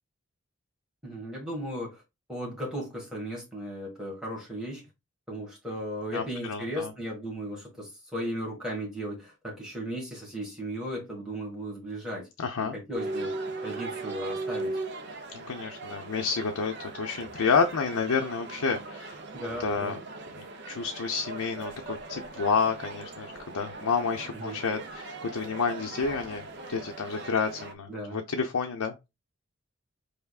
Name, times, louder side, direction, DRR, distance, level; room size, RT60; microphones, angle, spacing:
voice 1, 1.0-2.0 2.3-4.8 5.3-12.3 12.9-13.3 13.6-14.8 19.3-20.0 24.3-24.6 27.9-28.2, equal, 5° right, 1.5 m, -36 dB
voice 2, 6.1-6.9 12.4-12.8 15.3-19.2 19.6-20.0 20.4-26.4 26.7-29.1, left 5 dB, 85° left, 0.6 m, -30 dB
sound 1, 12.9-27.7, right 3 dB, 50° right, 0.6 m, -39 dB
4.9 x 3.4 x 2.3 m
head